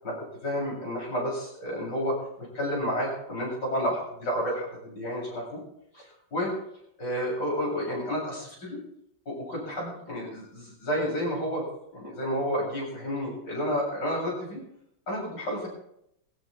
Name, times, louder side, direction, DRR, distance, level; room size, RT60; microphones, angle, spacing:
voice 1, 0.0-5.6 5.9-6.1 6.3-6.5 7.0-8.8 9.3-11.6 11.9-14.6 15.1-15.7, equal, 65° left, -3 dB, 8.9 m, -31 dB
20.5 x 16.5 x 3.6 m, 0.75 s
omnidirectional pair, 2.0 m